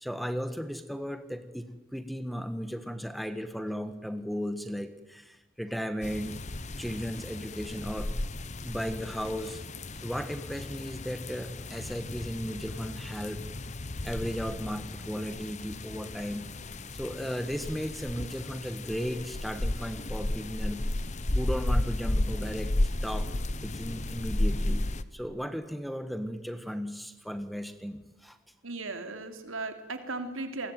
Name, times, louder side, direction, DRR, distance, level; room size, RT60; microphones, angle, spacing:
voice 1, 0.0-6.4 6.8-8.1 8.6-9.6 10.0-13.7 14.0-16.5 16.9-20.8 21.3-22.7 23.0-23.3 23.6-28.4, equal, ahead, 10 dB, 1.5 m, -35 dB
sound 1, 6.0-25.0, left 1 dB, 35° left, 1.0 m, -33 dB
voice 2, 28.6-30.7, right 3 dB, 90° right, 7 dB, 3.1 m, -36 dB
28.0 x 21.5 x 9.3 m, 0.98 s
head